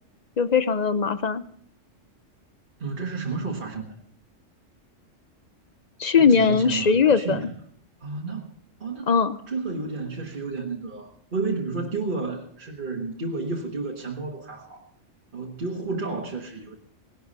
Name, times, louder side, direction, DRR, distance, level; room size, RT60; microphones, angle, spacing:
voice 1, 0.4-1.4 6.0-7.5 9.1-9.4, left 5 dB, 45° left, 13 dB, 0.6 m, -20 dB
voice 2, 2.8-4.0 6.1-7.5 8.0-8.5 8.8-9.1 9.5-14.8 15.3-16.8, right 3 dB, 40° right, -1 dB, 1.7 m, -31 dB
18.5 x 11.0 x 5.4 m, 0.63 s
omnidirectional pair, 1.3 m